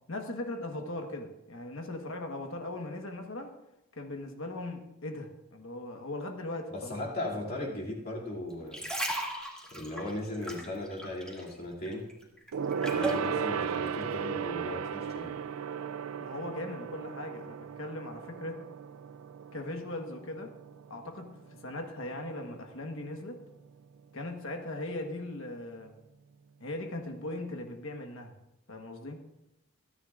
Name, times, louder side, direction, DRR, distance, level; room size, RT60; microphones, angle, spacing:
voice 1, 0.1-3.5 3.9-7.0 16.2-18.6 19.5-20.5 20.9-23.4 24.1-25.9 26.6-28.3 28.7-29.2, left 2 dB, 60° left, 4 dB, 1.3 m, -39 dB
voice 2, 6.7-8.9 9.7-12.1 12.9-15.3, left 1 dB, 45° left, -4 dB, 2.6 m, -37 dB
sound 1, 8.5-11.6 11.8-13.3 13.9-14.0, right 1 dB, 5° left, 2.2 m, -36 dB
Gong, 12.5-22.3 22.6-22.9 23.2-23.3, right 7 dB, 70° right, 0.4 m, -36 dB
27.0 x 9.9 x 2.5 m, 0.90 s
head